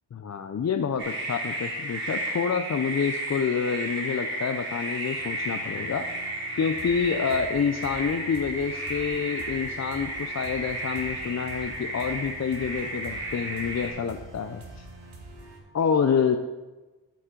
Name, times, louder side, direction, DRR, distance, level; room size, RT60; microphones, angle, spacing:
voice 1, 0.1-6.1 6.6-14.9 15.7-16.4, left 6 dB, 35° left, 6 dB, 0.5 m, -28 dB
sound 1, 1.0-13.9, right 1 dB, 25° right, 3.2 m, -33 dB
sound 2, 5.2-15.6, right 2 dB, 75° right, 2.0 m, -45 dB
13.0 x 5.4 x 3.8 m, 1.2 s
cardioid pair, 70°, 47 cm